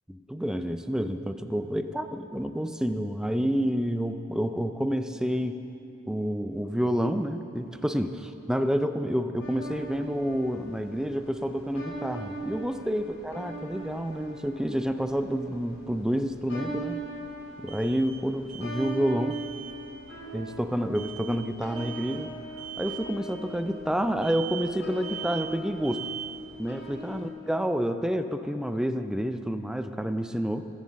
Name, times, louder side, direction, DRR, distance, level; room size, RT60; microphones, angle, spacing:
voice 1, 0.1-5.6 6.1-17.0 17.6-19.4 20.3-22.3 22.8-26.1 26.6-30.7, equal, 5° right, 9 dB, 0.4 m, -29 dB
sound 1, 9.4-27.3, right 2 dB, 50° left, 3.7 m, -41 dB
sound 2, 17.7-19.1 19.3-19.8 20.9-21.4 21.8-22.3 22.6-23.1 24.2-24.8 25.0-25.6 25.8-26.4, right 10 dB, 35° right, 2.2 m, -40 dB
20.5 x 7.4 x 7.4 m, 3.0 s
head